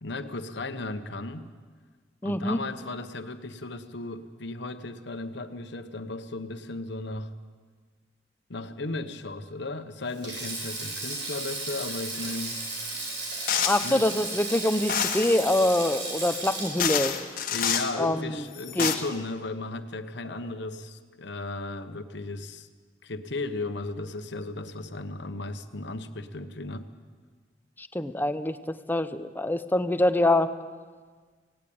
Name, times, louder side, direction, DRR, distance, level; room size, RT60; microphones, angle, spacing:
voice 1, 0.0-1.5 2.2-7.3 8.5-12.6 13.8-14.1 17.5-22.7 23.0-26.9, left 2 dB, 65° left, 9 dB, 1.1 m, -35 dB
voice 2, 2.2-2.6 13.7-17.1 18.0-18.5 18.8-18.9 27.8-30.5, left 1 dB, 10° left, 11 dB, 0.7 m, -25 dB
Sink (filling or washing), 10.1-18.6 18.8-19.1 20.2-20.5, right 2 dB, 70° right, 5.4 m, -35 dB
sound 1, 13.5-13.9 14.9-15.3 16.3-16.4 16.8-17.9 18.5-18.9, left 8 dB, 50° left, 1.5 m, -27 dB
18.0 x 17.5 x 8.6 m, 1.5 s
head